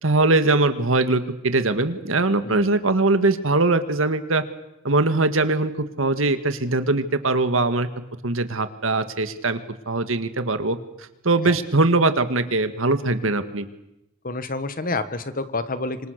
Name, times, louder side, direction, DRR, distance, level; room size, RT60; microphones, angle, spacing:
voice 1, 0.0-4.4 4.8-7.9 8.2-9.6 9.9-13.7, right 2 dB, 75° right, 10 dB, 1.9 m, -21 dB
voice 2, 14.2-16.1, left 3 dB, 45° left, 12 dB, 1.6 m, -28 dB
26.5 x 25.5 x 6.7 m, 0.87 s
head